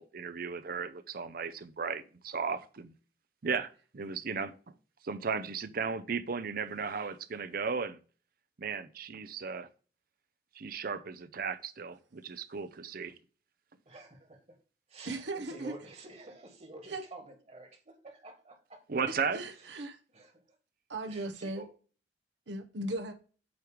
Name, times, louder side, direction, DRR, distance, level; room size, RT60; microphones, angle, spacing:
voice 1, 0.0-2.9 3.4-4.6 5.0-8.0 8.6-9.7 10.5-13.2 18.9-19.4, right 5 dB, 55° right, 0.6 m, -35 dB
voice 2, 13.9-14.6 14.9-18.8 20.1-20.4 21.1-21.7, right 2 dB, 35° right, 1.9 m, -50 dB
voice 3, 15.0-15.7 16.9-17.0 19.3-20.0 20.9-21.6 22.5-23.1, right 2 dB, 75° right, 1.0 m, -37 dB
8.1 x 3.2 x 5.0 m
head